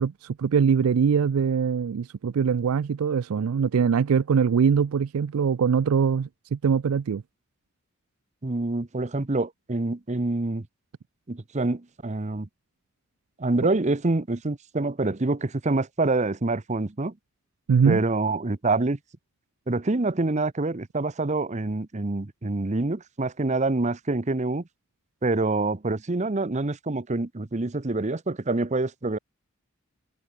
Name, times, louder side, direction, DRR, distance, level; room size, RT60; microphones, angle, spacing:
voice 1, 0.0-7.2 17.7-18.0, right 6 dB, 80° right, 0.4 m, -22 dB
voice 2, 8.4-10.7 11.3-12.5 13.4-17.1 17.9-19.0 19.7-24.6 25.2-29.2, right 2 dB, 35° right, 0.8 m, -26 dB
head